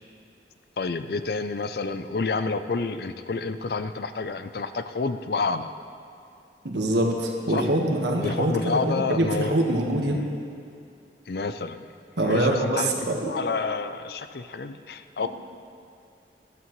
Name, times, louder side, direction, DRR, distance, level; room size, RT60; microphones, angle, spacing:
voice 1, 0.8-5.7 7.5-7.7 8.2-9.5 10.1-10.3 11.3-11.9 12.2-15.3, left 4 dB, 60° left, 10 dB, 0.5 m, -29 dB
voice 2, 6.6-10.2 12.2-13.3, right 1 dB, 85° right, 0 dB, 1.5 m, -24 dB
14.0 x 13.0 x 3.1 m, 2.5 s
head